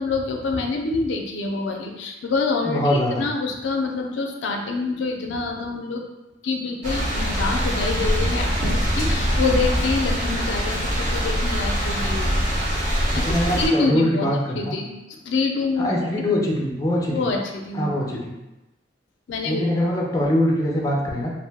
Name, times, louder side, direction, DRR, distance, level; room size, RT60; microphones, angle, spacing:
voice 1, 0.0-6.0 6.4-12.5 13.1-14.3 14.5-16.1 17.1-18.2 19.3-19.6, left 3 dB, 85° left, 2 dB, 0.4 m, -26 dB
voice 2, 2.6-3.3 13.1-14.8 15.8-17.3 17.7-18.3 19.4-21.3, left 1 dB, 20° left, -2 dB, 0.4 m, -23 dB
sound 1, 6.8-13.7, equal, 45° right, 0.8 m, -23 dB
2.5 x 2.1 x 3.3 m, 1.0 s
head